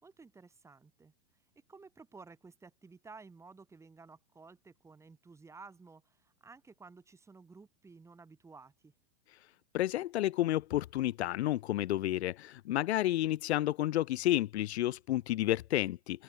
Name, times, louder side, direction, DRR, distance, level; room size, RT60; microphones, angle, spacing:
voice 1, 0.0-1.4 1.7-8.9, right 4 dB, 10° right, 4.7 m, -54 dB
voice 2, 9.7-16.2, left 14 dB, 65° left, 1.5 m, -31 dB
open air
supercardioid pair, 160°, 35 cm